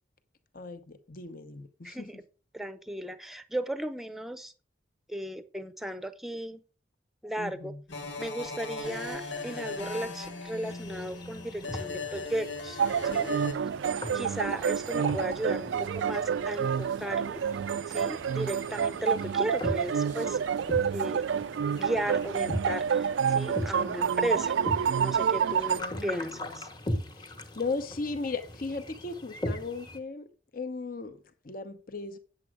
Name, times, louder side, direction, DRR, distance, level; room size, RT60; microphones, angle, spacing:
voice 1, 0.5-2.1 7.4-7.8 25.7-26.5 27.1-32.2, left 3 dB, 50° left, 0.9 m, -37 dB
voice 2, 1.8-2.2 2.5-4.5 5.1-6.6 7.2-7.7 8.2-12.8 13.1-13.3 14.1-17.4 17.9-20.4 20.9-21.3 21.7-24.6 25.0-26.7, right 1 dB, ahead, 0.7 m, -35 dB
sound 1, 7.9-13.5, left 3 dB, 90° left, 1.9 m, -38 dB
sound 2, 10.6-30.0, left 1 dB, 25° left, 1.2 m, -40 dB
sound 3, 12.8-25.8, right 7 dB, 85° right, 0.4 m, -28 dB
8.8 x 7.6 x 4.8 m
head